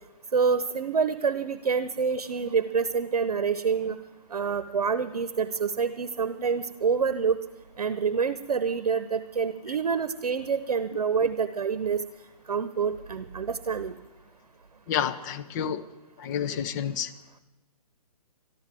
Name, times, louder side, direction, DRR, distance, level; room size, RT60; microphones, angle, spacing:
voice 1, 0.3-4.0 4.3-7.4 7.8-12.0 12.5-13.9, right 6 dB, 90° right, 12 dB, 0.8 m, -27 dB
voice 2, 14.9-15.8 16.2-17.1, left 8 dB, 30° left, 10 dB, 0.8 m, -29 dB
13.5 x 12.5 x 7.5 m, 1.1 s
hypercardioid pair, 150°, 20 cm